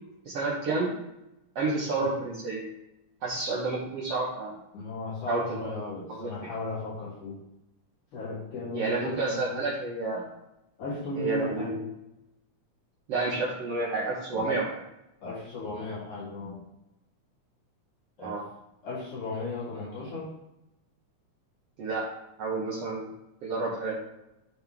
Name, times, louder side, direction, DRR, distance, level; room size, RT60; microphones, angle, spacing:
voice 1, 0.3-1.0 1.6-2.6 3.2-4.5 5.3-5.4 6.1-6.3 8.7-10.3 11.2-11.8 13.1-14.6 18.2-18.4 21.8-22.1 22.4-23.1 23.4-24.0, right 3 dB, 60° right, -5 dB, 2.0 m, -30 dB
voice 2, 4.7-7.4 8.1-9.6 10.8-11.8 14.3-14.6 15.2-16.6 18.2-18.4 18.8-20.3, left 3 dB, 75° left, -11 dB, 4.8 m, -36 dB
12.5 x 4.3 x 3.5 m, 0.90 s
omnidirectional pair, 3.5 m